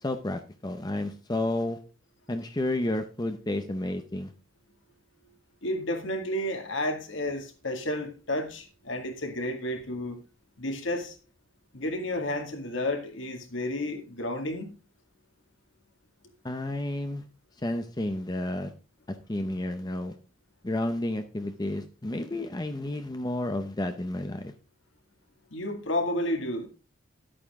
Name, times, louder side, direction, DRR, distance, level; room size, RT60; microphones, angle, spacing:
voice 1, 0.0-1.8 2.3-4.3 16.4-17.2 17.6-18.7 19.1-20.1 20.6-24.5, left 1 dB, 20° left, 0.7 m, -31 dB
voice 2, 5.6-10.2 10.6-11.2 11.7-14.7 25.5-26.7, left 1 dB, 65° left, 2.1 m, -31 dB
11.5 x 8.6 x 3.6 m
head